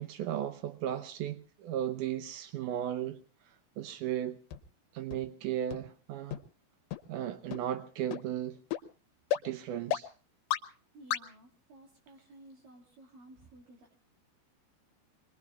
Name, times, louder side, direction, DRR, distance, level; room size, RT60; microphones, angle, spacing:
voice 1, 0.0-3.2 3.8-4.4 4.9-6.4 7.1-8.6 9.4-10.1, right 11 dB, 80° right, 1.8 m, -35 dB
sound 1, 4.5-4.6 5.1-5.2 5.7-5.8 6.3-6.4 6.9-7.0 7.5-7.6 8.1-8.2 8.7-8.8 9.3-9.4 9.9-10.0 10.5-10.6 11.1-11.2, left 11 dB, 80° left, 3.1 m, -31 dB
voice 2, 10.9-13.9, right 1 dB, 60° right, 3.7 m, -55 dB
27.5 x 22.0 x 2.4 m
omnidirectional pair, 4.8 m